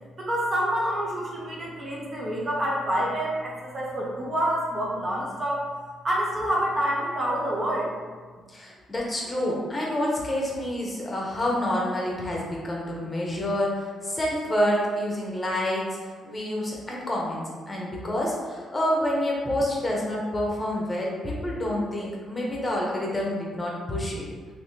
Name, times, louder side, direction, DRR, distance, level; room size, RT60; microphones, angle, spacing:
voice 1, 0.2-5.7 6.0-8.1, right 1 dB, 40° right, -4 dB, 0.8 m, -27 dB
voice 2, 8.5-24.2, left 1 dB, 20° left, -3 dB, 0.8 m, -28 dB
3.3 x 3.0 x 2.8 m, 1.5 s
cardioid pair, 90°, 0 cm